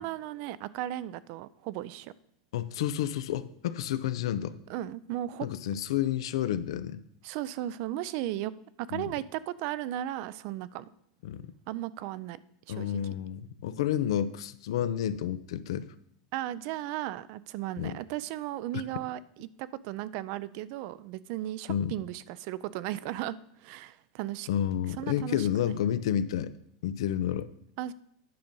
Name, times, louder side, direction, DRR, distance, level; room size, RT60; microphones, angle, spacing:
voice 1, 0.0-2.1 4.7-5.5 7.2-8.5 8.8-10.9 11.7-12.4 12.7-13.0 16.3-24.5 25.0-25.7 27.8-27.9, right 13 dB, 55° right, 17 dB, 0.4 m, -36 dB
voice 2, 2.5-4.6 5.4-7.0 8.9-9.1 11.2-11.4 12.7-15.9 17.8-18.0 18.7-18.8 21.7-21.9 24.5-26.5 26.8-27.5, left 10 dB, 80° left, 14 dB, 0.5 m, -30 dB
9.7 x 5.2 x 5.4 m, 0.70 s
supercardioid pair, 130°, 3 cm